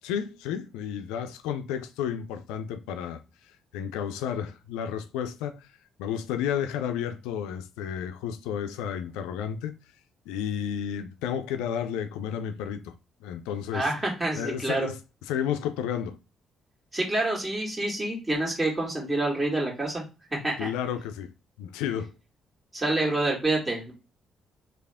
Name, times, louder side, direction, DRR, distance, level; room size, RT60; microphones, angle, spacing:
voice 1, 0.0-3.2 3.7-5.7 6.0-9.7 10.3-13.0 13.2-13.9 14.4-15.0 15.2-16.2 20.6-21.3 21.6-22.1, left 9 dB, 90° left, 0.3 m, -32 dB
voice 2, 13.7-14.9 16.9-20.0 20.4-20.7 22.7-23.9, right 2 dB, 25° right, 2.0 m, -27 dB
3.3 x 2.4 x 3.5 m
supercardioid pair, 60°, 0 cm